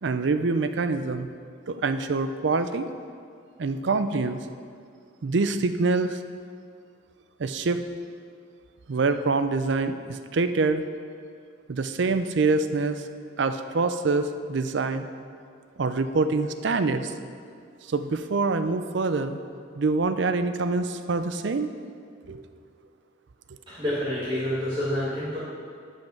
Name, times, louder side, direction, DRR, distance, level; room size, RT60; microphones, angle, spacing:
voice 1, 0.0-1.3 1.7-2.9 3.6-4.4 5.2-6.2 7.4-7.8 8.9-10.9 11.7-13.0 13.4-15.1 15.8-17.1 17.9-19.4 19.8-21.7 22.3-22.5, right 3 dB, 60° right, 10 dB, 0.5 m, -25 dB
voice 2, 23.7-25.4, left 1 dB, 25° right, -12 dB, 1.9 m, -28 dB
10.5 x 5.6 x 5.8 m, 2.2 s
head